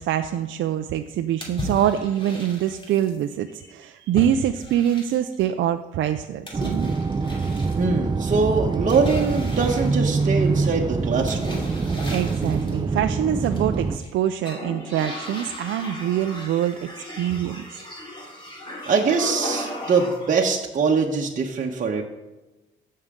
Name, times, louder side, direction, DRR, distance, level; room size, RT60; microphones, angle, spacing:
voice 1, 0.0-6.9 12.1-17.8, right 10 dB, 75° right, 7 dB, 0.5 m, -25 dB
sound 1, 1.4-3.2 4.2-5.4 6.5-7.8 8.9-10.6 11.3-12.8 13.4-14.1 14.4-20.4, left 1 dB, 25° left, 2.7 m, -36 dB
sound 2, 6.5-14.0, right 4 dB, 20° right, 0.6 m, -25 dB
voice 2, 7.8-11.6 18.8-22.0, right 4 dB, 40° right, 0 dB, 1.2 m, -23 dB
15.5 x 6.6 x 3.7 m, 1.1 s
cardioid pair, 90°, 20 cm